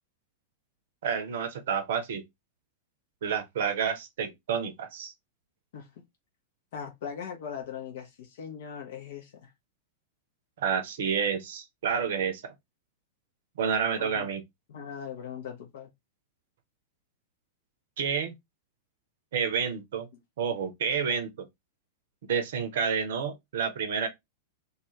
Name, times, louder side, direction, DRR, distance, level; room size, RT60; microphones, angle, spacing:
voice 1, 1.0-2.2 3.2-5.1 10.6-12.5 13.6-14.4 18.0-18.3 19.3-20.1 20.4-21.3 22.3-24.1, right 7 dB, 60° right, 0.6 m, -29 dB
voice 2, 6.7-9.5 14.0-14.3 14.7-15.9, left 7 dB, 60° left, 0.6 m, -40 dB
2.4 x 2.3 x 3.0 m
figure-of-eight pair, 95°, 0 cm